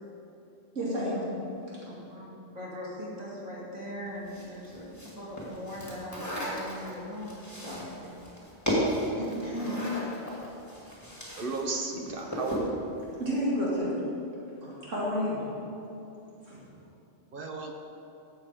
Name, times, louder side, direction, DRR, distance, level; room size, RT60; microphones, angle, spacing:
voice 1, 0.7-1.3 13.2-13.9 14.6-15.4 16.4-16.6, equal, 85° right, -7 dB, 2.9 m, -30 dB
voice 2, 1.8-7.9 9.2-9.9, equal, 30° right, -5 dB, 2.4 m, -39 dB
sound 1, 4.3-11.6 11.9-12.7, equal, 15° left, 2.2 m, -34 dB
voice 3, 11.4-12.8 17.3-17.7, right 3 dB, 50° right, 3 dB, 1.1 m, -34 dB
12.0 x 7.5 x 5.1 m, 2.9 s
omnidirectional pair, 1.3 m